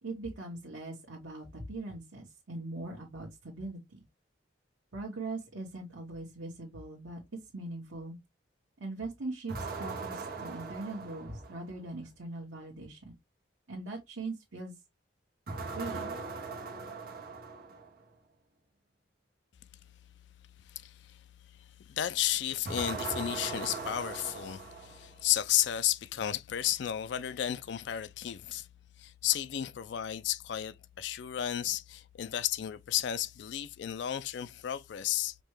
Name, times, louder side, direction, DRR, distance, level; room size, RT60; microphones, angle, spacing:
voice 1, 0.0-4.0 4.9-7.2 7.5-8.2 8.8-13.1 13.7-14.7 15.7-16.2, right 2 dB, 80° right, 1.2 m, -41 dB
sound 1, 9.5-11.8 15.5-18.0 22.6-25.3, right 4 dB, 50° right, 0.8 m, -40 dB
voice 2, 20.6-21.2 21.9-28.7 29.0-35.4, left 11 dB, 65° left, 0.3 m, -33 dB
5.2 x 2.2 x 3.0 m
head